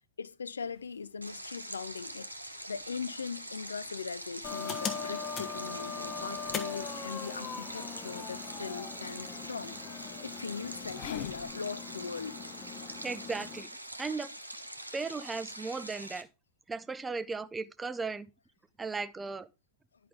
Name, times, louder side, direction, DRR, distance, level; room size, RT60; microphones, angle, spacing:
voice 1, 0.2-12.4, left 5 dB, 75° left, 0.4 m, -40 dB
sound 1, 0.6-11.5, left 11 dB, 50° left, 0.7 m, -51 dB
Stream, 1.2-16.2, right 1 dB, 85° right, 0.9 m, -44 dB
sound 2, 4.4-13.6, left 6 dB, 25° left, 1.2 m, -40 dB
voice 2, 13.0-13.7 14.0-14.3 14.9-16.3 16.7-18.3 18.8-19.5, right 4 dB, 15° right, 0.5 m, -36 dB
11.0 x 5.2 x 3.5 m
figure-of-eight pair, 90°, 0 cm